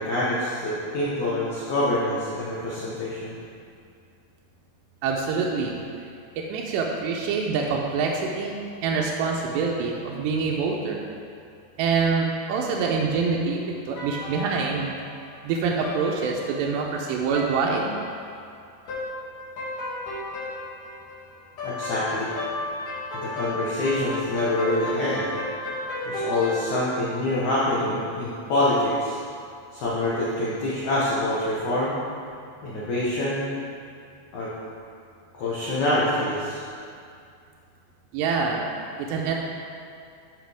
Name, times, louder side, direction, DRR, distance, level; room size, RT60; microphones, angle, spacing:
voice 1, 0.0-3.3 21.6-22.3 23.2-25.2 26.1-29.2 29.7-32.0 32.6-33.5 34.3-34.5 35.4-36.6, left 1 dB, 85° left, -8 dB, 1.6 m, -25 dB
voice 2, 5.0-5.8 6.4-11.0 11.8-14.9 15.4-18.0 38.1-38.7 39.0-39.4, right 5 dB, 80° right, -1 dB, 2.6 m, -25 dB
sound 1, 14.0-15.5 15.8-16.0 16.3-16.8 17.3-17.5 17.9-18.4 18.9-19.1 19.4-26.7, left 2 dB, 55° left, 3.4 m, -33 dB
12.5 x 5.6 x 3.4 m, 2.4 s
omnidirectional pair, 5.2 m